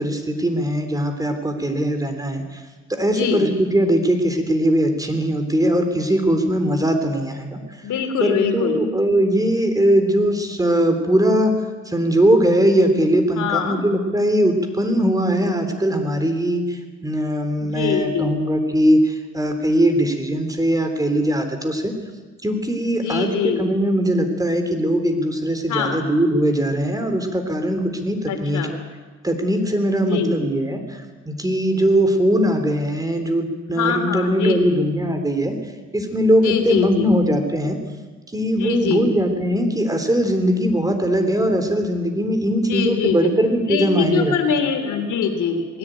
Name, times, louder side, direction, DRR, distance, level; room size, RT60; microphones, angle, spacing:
voice 1, 0.0-2.4 2.9-7.6 8.2-11.5 11.9-21.9 22.4-28.7 29.2-30.8 31.3-35.6 35.9-37.8 38.3-44.3, equal, 10° right, 6 dB, 3.6 m, -20 dB
voice 2, 3.1-3.5 7.8-8.8 13.3-13.8 17.6-18.3 22.9-23.7 25.7-26.0 28.3-28.8 30.0-30.4 33.7-34.8 36.4-37.1 38.5-39.1 42.4-43.3 43.7-45.8, left 6 dB, 75° left, 6 dB, 3.2 m, -23 dB
20.0 x 16.5 x 9.2 m, 1.3 s
cardioid pair, 90°, 30 cm